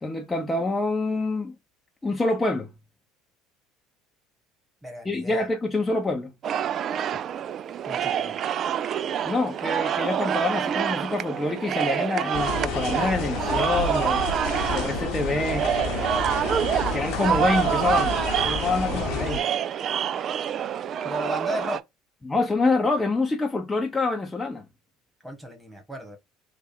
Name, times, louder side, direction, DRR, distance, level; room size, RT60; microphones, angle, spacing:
voice 1, 0.0-1.5 2.0-2.7 5.0-6.3 9.2-14.2 14.7-15.7 16.9-19.5 22.2-24.7, left 3 dB, 15° left, 0.7 m, -26 dB
voice 2, 4.8-5.5 7.8-8.4 16.9-17.5 21.0-21.8 25.2-26.2, equal, 5° right, 1.6 m, -36 dB
sound 1, 6.4-21.8, right 9 dB, 45° right, 0.3 m, -27 dB
sound 2, 12.3-19.4, left 5 dB, 60° left, 0.9 m, -30 dB
3.5 x 2.4 x 4.3 m
hypercardioid pair, 70°, 0 cm